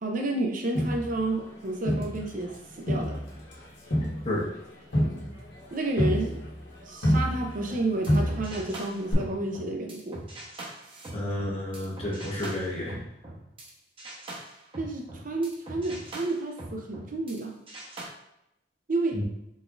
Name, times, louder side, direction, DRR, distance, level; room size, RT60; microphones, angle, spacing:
voice 1, 0.0-3.2 5.7-6.4 6.9-10.2 14.8-17.6 18.9-19.2, right 2 dB, 50° right, 3 dB, 0.6 m, -30 dB
Crowd, 0.7-2.5 2.9-7.8 8.1-8.7 9.1-9.2, equal, 75° left, 1.3 m, -28 dB
sound 1, 7.7-13.7 14.0-17.4 17.7-18.0, right 1 dB, 30° right, 0.9 m, -42 dB
voice 2, 11.1-13.0 19.1-19.2, left 1 dB, 35° left, -4 dB, 1.1 m, -31 dB
4.1 x 3.5 x 2.5 m, 0.82 s
head